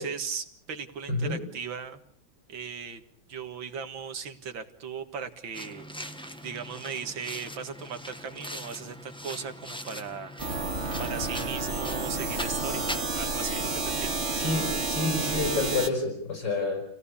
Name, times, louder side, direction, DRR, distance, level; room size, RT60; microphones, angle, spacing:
voice 1, 0.0-2.0 2.5-3.0 3.3-10.7 11.0-14.2, right 6 dB, 80° right, 7 dB, 2.5 m, -38 dB
voice 2, 1.1-1.4 14.3-16.8, left 3 dB, 65° left, 5 dB, 6.4 m, -29 dB
sound 1, 5.5-13.0, equal, 5° left, 1.1 m, -41 dB
sound 2, 10.4-15.9, right 3 dB, 35° right, 2.4 m, -30 dB
28.0 x 17.5 x 8.5 m, 0.64 s
omnidirectional pair, 2.1 m